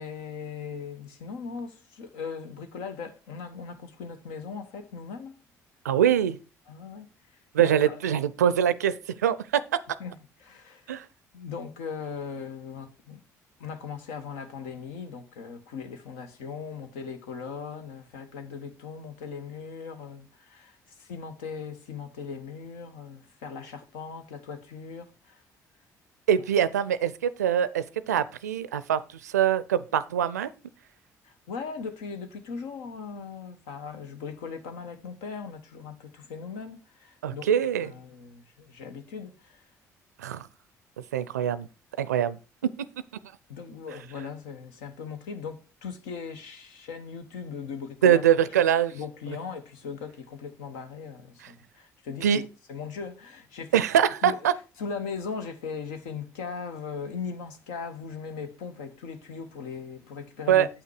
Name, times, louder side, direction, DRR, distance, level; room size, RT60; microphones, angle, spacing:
voice 1, 0.0-5.4 6.7-7.1 7.6-8.0 10.0-10.1 10.4-10.9 11.3-13.2 13.6-25.4 31.2-37.4 37.8-39.6 43.5-48.2 48.9-53.8 54.2-54.4 54.8-60.7, left 5 dB, 75° left, 1.1 m, -39 dB
voice 2, 5.8-6.4 7.5-8.9 9.2-9.8 10.9-11.1 26.3-30.5 37.2-37.9 40.2-40.5 41.1-41.7 42.0-42.4 48.0-48.9 49.3-49.4 51.4-51.5 52.2-52.4 53.7-54.6 60.5-60.7, right 9 dB, 90° right, 0.4 m, -23 dB
8.2 x 5.9 x 4.6 m
hypercardioid pair, 50°, 9 cm